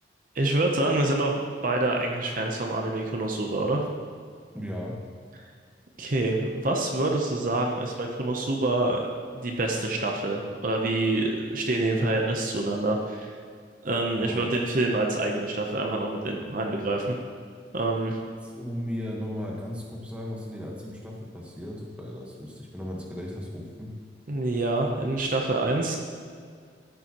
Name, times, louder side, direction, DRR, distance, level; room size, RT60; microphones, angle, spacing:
voice 1, 0.3-3.8 6.0-9.1 9.3-13.4 13.8-17.2 17.7-18.2 24.3-26.0, right 2 dB, 50° right, 1 dB, 0.7 m, -26 dB
voice 2, 4.5-4.9 14.1-14.6 18.4-23.9, equal, 5° right, -2 dB, 1.2 m, -36 dB
13.5 x 6.9 x 3.0 m, 2.1 s
head